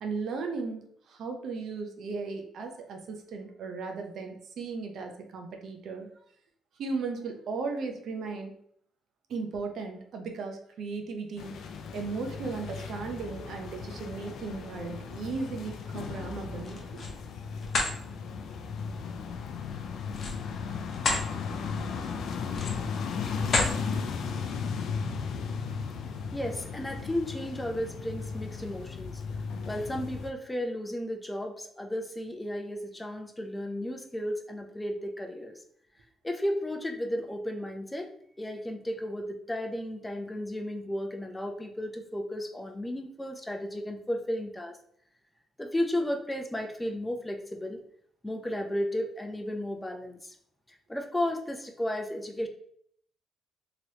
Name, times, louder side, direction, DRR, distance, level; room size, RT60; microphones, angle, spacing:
voice 1, 0.0-6.1 6.8-8.5 9.3-11.5 11.9-17.0, right 4 dB, 70° right, 4 dB, 0.6 m, -36 dB
sound 1, 11.4-30.3, left 5 dB, 75° left, 0.4 m, -36 dB
sound 2, 16.6-17.2 17.6-17.9 20.1-21.3 21.7-21.9 22.5-22.9 23.4-23.8, left 3 dB, 50° left, 0.8 m, -29 dB
voice 2, 26.3-29.2 29.7-35.6 36.2-38.1 38.4-44.8 45.6-47.8 48.2-50.4 50.9-52.5, left 1 dB, 15° left, 3 dB, 0.5 m, -34 dB
3.0 x 2.9 x 2.8 m, 0.66 s
cardioid pair, 90°, 0 cm